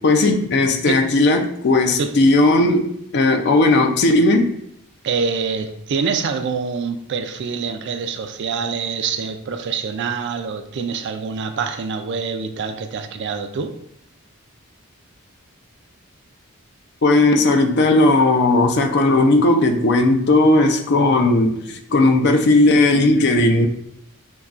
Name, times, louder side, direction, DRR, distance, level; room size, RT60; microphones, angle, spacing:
voice 1, 0.0-4.5 17.0-23.7, left 2 dB, 50° left, 0.5 m, -16 dB
voice 2, 5.0-13.8, right 5 dB, 55° right, 0.3 m, -25 dB
5.4 x 2.3 x 2.4 m
head